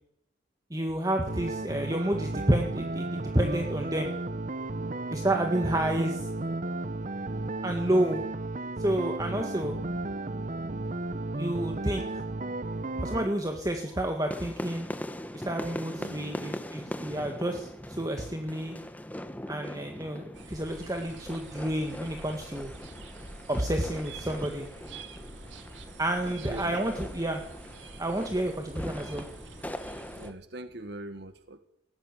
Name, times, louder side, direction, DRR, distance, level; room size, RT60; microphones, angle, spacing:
voice 1, 0.7-4.1 5.1-6.3 7.6-8.2 8.8-9.8 11.4-12.0 13.0-14.9 15.4-18.7 19.5-22.7 23.5-24.7 26.0-27.4 28.0-29.3, right 1 dB, 20° right, 4 dB, 1.8 m, -29 dB
sound 1, 1.3-13.3, right 2 dB, 40° right, 0.9 m, -34 dB
sound 2, 12.5-30.3, equal, 10° left, 1.3 m, -41 dB
voice 2, 15.9-16.4 26.4-26.8 30.1-31.6, right 1 dB, 60° right, 9 dB, 1.7 m, -42 dB
sound 3, 20.3-30.3, right 3 dB, 85° right, 3.0 m, -47 dB
20.0 x 18.0 x 9.9 m, 0.77 s
head